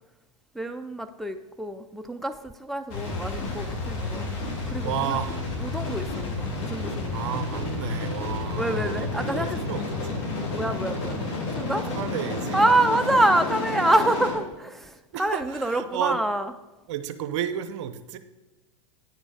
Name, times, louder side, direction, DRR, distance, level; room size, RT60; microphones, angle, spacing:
voice 1, 0.5-4.3 4.7-5.2 5.6-7.1 8.6-9.6 10.5-11.2 11.5-11.9 12.5-16.5, right 1 dB, ahead, 7 dB, 0.4 m, -26 dB
sound 1, 2.9-14.3, left 3 dB, 55° left, 2.6 m, -31 dB
voice 2, 4.8-5.4 7.1-10.2 11.8-12.6 15.1-16.2 16.9-18.2, right 10 dB, 60° right, 11 dB, 0.7 m, -32 dB
9.2 x 5.1 x 4.9 m, 1.2 s
hypercardioid pair, 100°, 17 cm